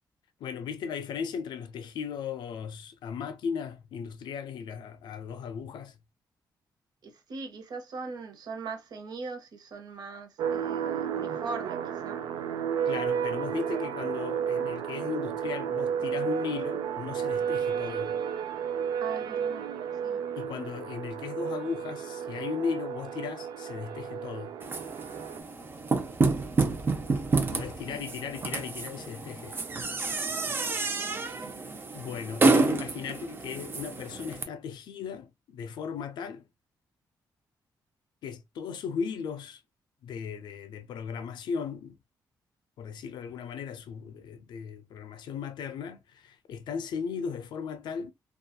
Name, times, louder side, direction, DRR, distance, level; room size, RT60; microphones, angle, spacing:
voice 1, 0.4-6.0 12.8-18.2 20.4-24.6 27.5-29.6 31.9-36.4 38.2-39.6 40.0-42.0 42.8-48.1, left 6 dB, 85° left, 0.4 m, -37 dB
voice 2, 7.0-12.2 19.0-19.7 20.0-20.2 27.9-28.0 31.1-31.6, right 4 dB, 65° right, 0.9 m, -41 dB
sound 1, 10.4-25.4, right 8 dB, 85° right, 0.4 m, -32 dB
sound 2, 24.6-34.4, right 3 dB, 30° right, 0.5 m, -29 dB
2.7 x 2.3 x 2.2 m
cardioid pair, 110°, 8 cm